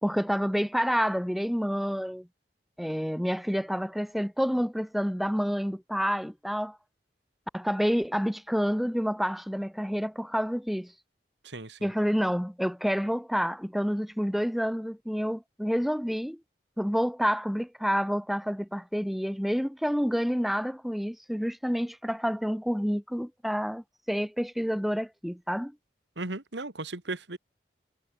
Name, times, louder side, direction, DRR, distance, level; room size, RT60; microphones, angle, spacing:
voice 1, 0.0-2.3 2.8-6.8 7.5-10.9 11.8-16.4 16.8-25.7, equal, ahead, 1.8 m, -28 dB
voice 2, 11.4-11.9 26.2-27.4, right 2 dB, 85° right, 2.5 m, -36 dB
head